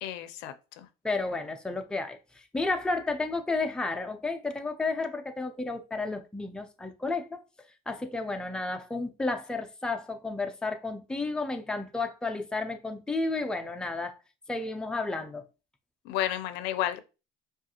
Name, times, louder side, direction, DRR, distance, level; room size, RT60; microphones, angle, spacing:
voice 1, 0.0-0.9 16.0-17.0, left 12 dB, 80° left, 0.5 m, -32 dB
voice 2, 1.0-7.4 7.9-14.2 14.5-15.4, left 3 dB, 5° left, 0.4 m, -32 dB
4.9 x 2.4 x 2.8 m
cardioid pair, 140°, 18 cm